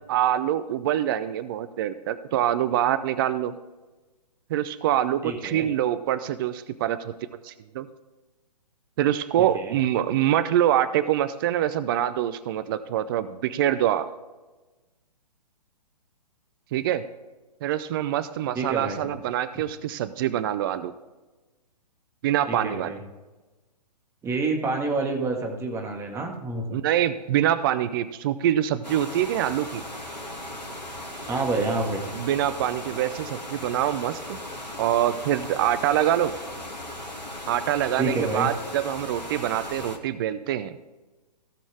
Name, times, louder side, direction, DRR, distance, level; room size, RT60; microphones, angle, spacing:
voice 1, 0.1-3.5 4.5-7.1 7.4-7.9 9.0-14.1 16.7-17.0 17.6-20.9 22.2-22.9 26.7-29.8 32.1-34.2 34.8-36.3 37.5-40.8, right 11 dB, 35° right, 13 dB, 0.5 m, -25 dB
voice 2, 5.2-5.7 9.5-9.8 18.5-19.0 22.5-23.0 24.2-26.6 31.3-32.0 38.0-38.5, right 3 dB, 15° right, 2 dB, 1.8 m, -28 dB
sound 1, 28.8-40.0, left 1 dB, 90° left, 2.3 m, -37 dB
17.0 x 6.2 x 3.4 m, 1.2 s
figure-of-eight pair, 125°, 21 cm